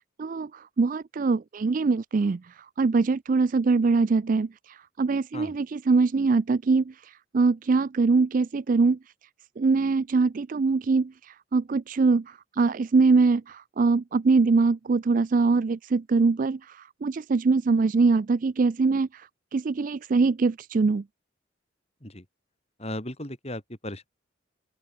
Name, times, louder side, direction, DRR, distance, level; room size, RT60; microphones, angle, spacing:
voice 1, 0.2-2.4 2.8-6.8 7.3-9.0 9.6-21.0, right 4 dB, 40° right, 0.4 m, -23 dB
voice 2, 22.8-24.1, left 1 dB, 30° left, 6.2 m, -36 dB
open air
head